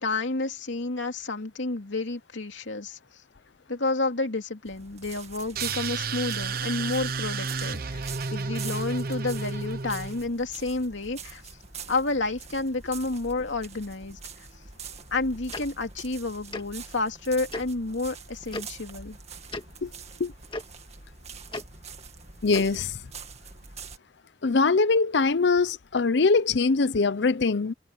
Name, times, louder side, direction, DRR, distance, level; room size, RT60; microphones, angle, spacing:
voice 1, 0.0-3.0 3.7-8.0 8.3-11.4 11.9-14.2 15.1-19.2, left 3 dB, 80° left, 2.5 m, -30 dB
sound 1, 4.6-24.0, right 6 dB, 35° right, 2.0 m, -44 dB
sound 2, 5.6-10.3, right 4 dB, 50° right, 0.9 m, -32 dB
Tick-tock, 15.5-15.6 16.5-16.6 17.5-17.6 18.5-18.6 19.5-19.6 20.5-20.6 21.5-21.6 22.5-22.7, left 2 dB, 25° left, 1.9 m, -34 dB
voice 2, 22.4-23.0 24.4-27.7, left 4 dB, 65° left, 0.6 m, -22 dB
head